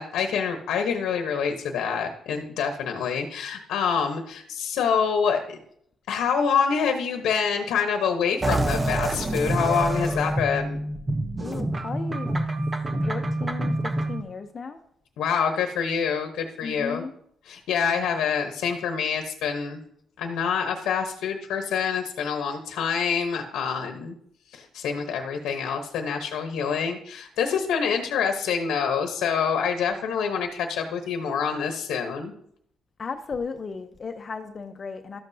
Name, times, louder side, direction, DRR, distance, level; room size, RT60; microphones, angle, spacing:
voice 1, 0.0-5.6 6.1-10.8 15.2-17.0 17.5-19.8 20.2-24.1 24.5-32.3, left 6 dB, 85° left, 1.0 m, -26 dB
sound 1, 8.4-14.2, right 1 dB, 25° right, 0.9 m, -27 dB
voice 2, 11.4-12.3 13.0-14.8 16.6-17.1 33.0-35.2, left 5 dB, 40° left, 0.7 m, -35 dB
13.0 x 7.4 x 2.7 m
cardioid pair, 90°, 0 cm